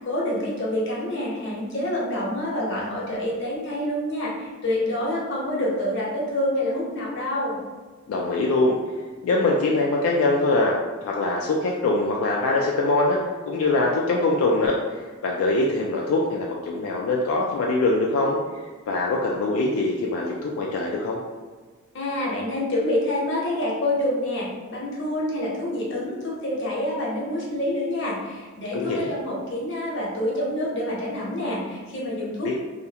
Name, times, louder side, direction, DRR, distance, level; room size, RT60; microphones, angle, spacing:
voice 1, 0.0-7.6 21.9-32.5, left 1 dB, 60° left, -5 dB, 0.7 m, -27 dB
voice 2, 8.1-8.8 9.2-10.7 11.0-13.2 13.4-21.2 28.7-29.1 32.4-32.5, left 2 dB, 85° left, -2 dB, 0.3 m, -23 dB
2.3 x 2.0 x 2.7 m, 1.4 s
head